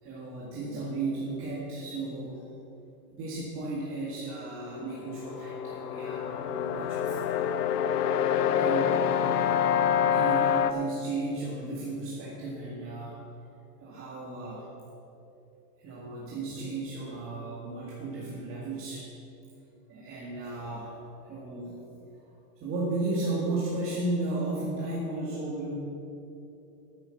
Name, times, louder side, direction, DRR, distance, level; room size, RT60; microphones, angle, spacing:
voice 1, 0.0-2.4 3.1-7.5 8.5-9.7 10.0-13.2 13.8-14.7 15.8-19.1 19.9-21.0 21.2-21.8 22.6-25.7, right 2 dB, 25° right, -6 dB, 1.9 m, -34 dB
sound 1, 4.8-10.7, left 8 dB, 80° left, 0.8 m, -26 dB
9.4 x 8.8 x 7.0 m, 2.9 s
supercardioid pair, 145°, 47 cm